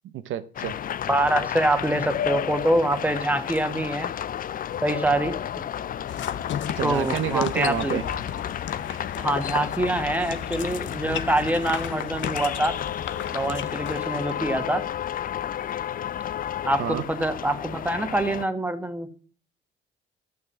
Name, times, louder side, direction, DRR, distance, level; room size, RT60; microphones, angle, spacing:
voice 1, 0.1-0.8 6.7-8.0 8.9-9.0 16.8-17.0, right 10 dB, 80° right, 0.8 m, -29 dB
sound 1, 0.6-18.5, left 10 dB, 45° left, 0.5 m, -32 dB
voice 2, 1.1-4.1 4.8-5.4 6.8-8.0 9.2-12.8 13.3-14.8 16.6-19.1, right 1 dB, 10° right, 1.6 m, -25 dB
sound 2, 6.1-14.4, left 9 dB, 70° left, 0.9 m, -35 dB
12.0 x 6.6 x 7.4 m
cardioid pair, 90°, 20 cm